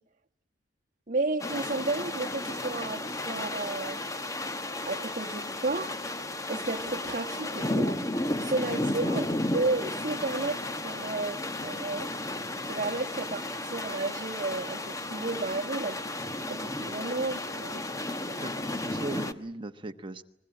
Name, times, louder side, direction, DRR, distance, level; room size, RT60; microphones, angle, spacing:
voice 1, 1.1-4.0 4.9-5.9 6.5-8.0 8.4-12.1 12.6-16.0 16.5-17.8, right 3 dB, 45° right, 1.4 m, -32 dB
sound 1, 1.4-19.3, left 1 dB, 20° left, 1.0 m, -33 dB
voice 2, 18.3-20.2, right 2 dB, 30° right, 1.2 m, -39 dB
25.0 x 22.5 x 9.0 m
head